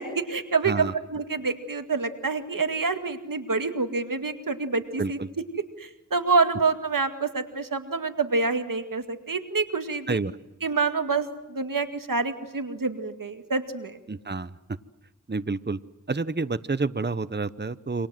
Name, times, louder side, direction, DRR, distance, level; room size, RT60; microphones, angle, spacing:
voice 1, 0.0-5.2 5.8-10.2 10.6-14.0, right 4 dB, 80° right, 8 dB, 2.1 m, -27 dB
voice 2, 14.1-14.5 15.3-15.8 16.1-18.1, right 3 dB, 30° right, 15 dB, 1.0 m, -28 dB
29.0 x 26.0 x 7.7 m, 0.99 s
wide cardioid pair, 40°, 32 cm